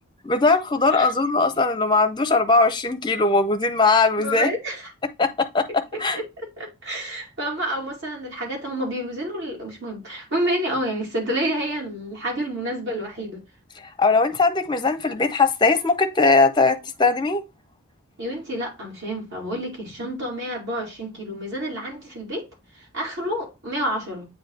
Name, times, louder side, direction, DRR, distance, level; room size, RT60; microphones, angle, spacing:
voice 1, 0.2-4.5 5.2-6.2 14.0-17.4, left 3 dB, 20° left, 0.6 m, -20 dB
voice 2, 4.2-4.9 5.9-13.4 18.2-22.5 22.9-24.3, right 1 dB, 55° right, 2.5 m, -29 dB
7.9 x 2.6 x 4.5 m
head